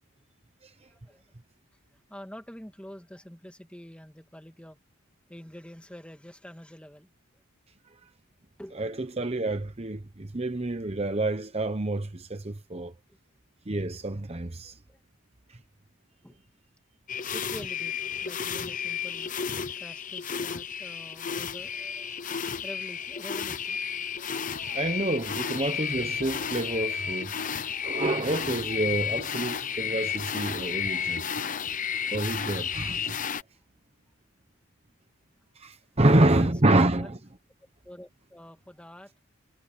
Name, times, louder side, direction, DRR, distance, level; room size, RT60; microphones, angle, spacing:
voice 1, 0.9-1.2 1.9-4.8 5.3-7.1 8.6-8.8 14.6-15.0 16.2-16.4 17.3-19.3 19.8-22.1 22.6-23.8 36.1-37.2 37.8-39.1, equal, 5° left, 2.1 m, -46 dB
voice 2, 8.7-12.9 13.7-14.8 15.5-15.6 24.7-27.3 27.8-31.4 32.1-33.2 35.6-37.2, right 2 dB, 30° right, 1.0 m, -27 dB
sound 1, 17.1-33.4, left 7 dB, 35° left, 0.8 m, -32 dB
sound 2, 24.5-31.7, left 3 dB, 55° left, 2.8 m, -48 dB
head